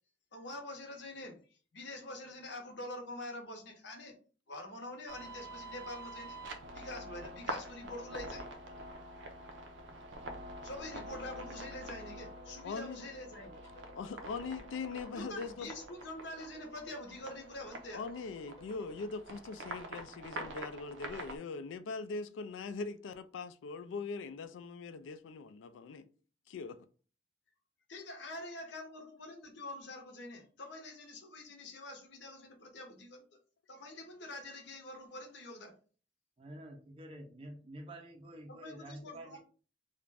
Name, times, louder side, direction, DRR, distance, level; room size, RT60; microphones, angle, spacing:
voice 1, 0.3-1.4 1.7-4.1 4.5-6.4 6.7-8.5 10.6-13.6 15.1-18.0 27.9-33.3 33.7-35.8 38.5-39.4, left 1 dB, 70° left, 0.7 m, -46 dB
sound 1, 5.1-21.4, right 1 dB, 85° right, 0.5 m, -46 dB
sound 2, 12.2-19.0, right 1 dB, 20° left, 0.7 m, -57 dB
voice 2, 12.6-13.1 13.9-15.7 17.9-26.1 26.5-26.8, left 4 dB, 85° left, 0.3 m, -41 dB
voice 3, 36.4-39.4, right 1 dB, 30° right, 0.4 m, -48 dB
2.4 x 2.1 x 3.2 m
head